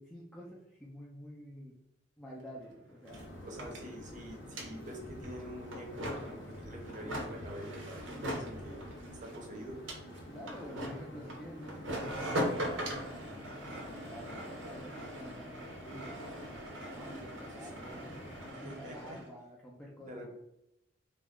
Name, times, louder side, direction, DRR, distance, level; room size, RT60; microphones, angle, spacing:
voice 1, 0.0-1.8 2.2-3.4 10.3-16.6 16.9-18.1 18.5-20.2, equal, 10° left, -4 dB, 0.4 m, -49 dB
sound 1, 2.4-2.5 2.7-19.3, equal, 90° right, 0.7 m, -41 dB
sound 2, 3.1-18.5, left 1 dB, 80° left, 0.7 m, -49 dB
voice 2, 3.4-8.8 9.2-9.8 17.6-17.7 18.5-19.2 20.0-20.3, equal, 40° right, 0 dB, 0.6 m, -46 dB
2.3 x 2.1 x 3.5 m, 0.86 s
head